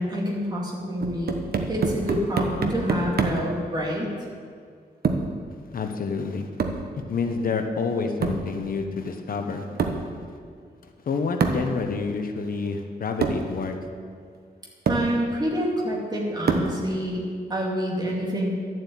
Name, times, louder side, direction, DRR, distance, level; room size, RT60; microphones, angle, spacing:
voice 1, 0.0-1.4 1.7-4.1 14.9-18.5, equal, 25° right, -3 dB, 2.4 m, -27 dB
sound 1, 1.0-3.5 5.0-5.4 6.6-6.9 8.2-8.5 9.8-10.1 11.4-11.7 12.7-12.8 13.2-13.5 14.3-14.4 14.9-15.1 16.5-16.8, right 4 dB, 75° right, 1.1 m, -26 dB
voice 2, 5.7-6.5 7.1-9.7 11.1-13.8, left 4 dB, 60° left, 5 dB, 1.0 m, -28 dB
11.5 x 7.7 x 8.5 m, 2.1 s
wide cardioid pair, 170°, 16 cm